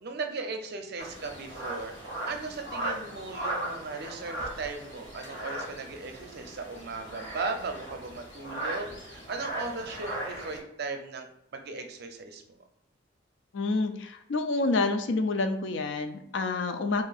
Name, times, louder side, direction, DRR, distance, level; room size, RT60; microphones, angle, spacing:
voice 1, 0.0-12.4, right 3 dB, 55° right, 5 dB, 0.5 m, -37 dB
sound 1, 1.0-10.6, right 1 dB, 85° left, 1.2 m, -38 dB
voice 2, 13.5-17.0, left 3 dB, 70° left, 7 dB, 0.4 m, -28 dB
2.7 x 2.5 x 3.9 m, 0.78 s
head